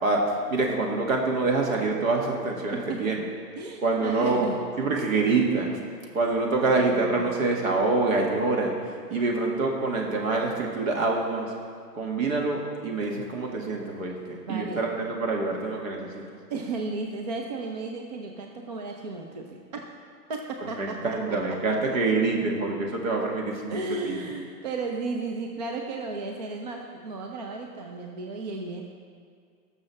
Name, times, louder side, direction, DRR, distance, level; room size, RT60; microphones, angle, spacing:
voice 1, 0.0-3.2 3.8-4.5 4.8-5.8 6.1-11.5 11.9-16.2 20.8-24.2, right 3 dB, 55° right, 0 dB, 1.9 m, -26 dB
voice 2, 2.7-3.2 3.6-4.6 6.6-7.2 14.5-14.9 16.5-19.8 20.3-21.0 21.3-21.6 23.7-28.8, right 3 dB, 25° right, 2 dB, 0.5 m, -34 dB
19.5 x 6.5 x 3.2 m, 2.2 s
figure-of-eight pair, 115°, 49 cm